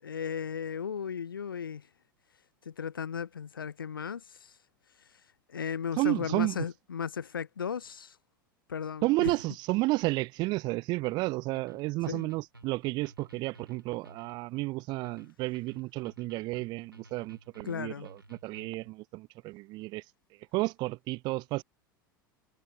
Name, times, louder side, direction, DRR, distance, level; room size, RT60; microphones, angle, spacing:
voice 1, 0.0-1.9 2.6-4.6 5.0-5.2 5.5-8.2 8.7-9.3 12.1-12.3 17.6-18.1, left 7 dB, 80° left, 0.7 m, -36 dB
voice 2, 6.0-6.6 9.0-18.2 18.4-20.0 20.5-21.6, right 21 dB, 40° right, 0.3 m, -31 dB
sound 1, 11.0-18.9, right 2 dB, 90° right, 3.0 m, -56 dB
figure-of-eight pair, 80°, 11 cm